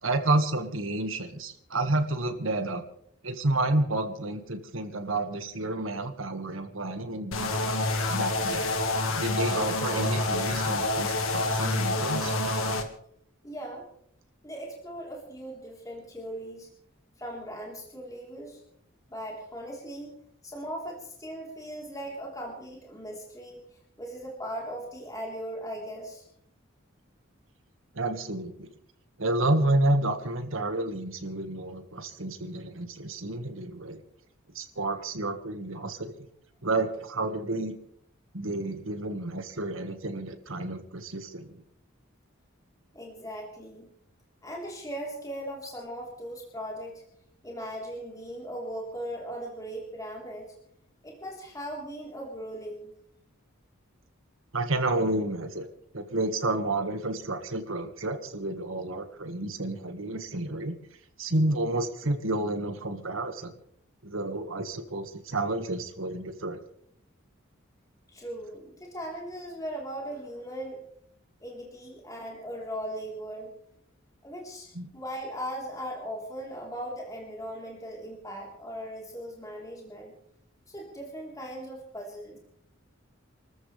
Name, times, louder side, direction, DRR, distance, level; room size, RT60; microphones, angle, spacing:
voice 1, 0.0-2.8 3.2-7.5 8.1-8.7 9.2-12.3 27.9-28.7 29.2-34.0 34.6-36.3 36.6-37.7 38.3-41.6 54.5-55.7 55.9-60.8 61.2-63.5 64.0-66.6 74.7-74.9, right 2 dB, 75° right, 7 dB, 1.8 m, -30 dB
sound 1, 7.3-12.8, left 2 dB, 85° left, 1.9 m, -27 dB
voice 2, 13.4-13.8 14.4-16.7 17.2-18.6 19.1-20.1 20.4-23.6 24.0-26.2 42.9-43.9 44.4-47.0 47.4-50.5 51.0-52.9 68.1-70.8 71.4-73.5 74.2-80.1 80.7-82.4, equal, 15° left, -2 dB, 3.8 m, -38 dB
28.5 x 14.0 x 3.4 m, 0.68 s
head